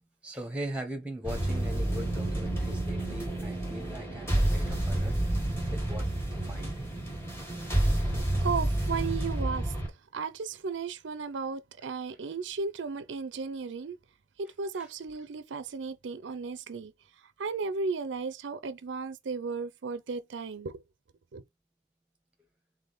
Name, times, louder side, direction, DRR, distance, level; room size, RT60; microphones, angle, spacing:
voice 1, 0.2-5.2 5.7-6.7 14.8-14.9, right 1 dB, 5° right, 0.9 m, -40 dB
sound 1, 1.2-9.9, right 1 dB, 15° left, 1.4 m, -29 dB
voice 2, 8.4-9.7 10.1-14.0 14.4-16.9 17.4-20.8 21.3-21.4, right 4 dB, 75° right, 0.5 m, -35 dB
3.7 x 3.5 x 4.0 m
head